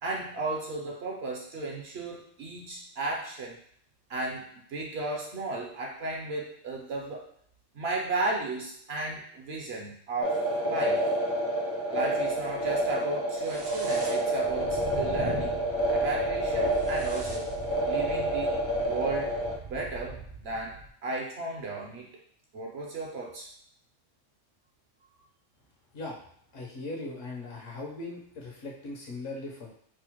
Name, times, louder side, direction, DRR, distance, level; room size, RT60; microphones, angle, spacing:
voice 1, 0.0-3.6 4.1-7.3 7.7-11.0 11.9-15.6 15.9-17.6 17.9-18.5 18.8-19.4 19.7-22.1 22.5-23.5, right 2 dB, 65° right, -1 dB, 0.8 m, -34 dB
sound 1, 10.2-19.6, right 1 dB, 25° left, 0.5 m, -28 dB
sound 2, 13.4-20.9, right 3 dB, 45° right, 0.3 m, -41 dB
voice 2, 26.5-29.7, left 2 dB, 80° left, -2 dB, 1.2 m, -39 dB
4.8 x 2.1 x 2.9 m, 0.64 s
omnidirectional pair, 1.3 m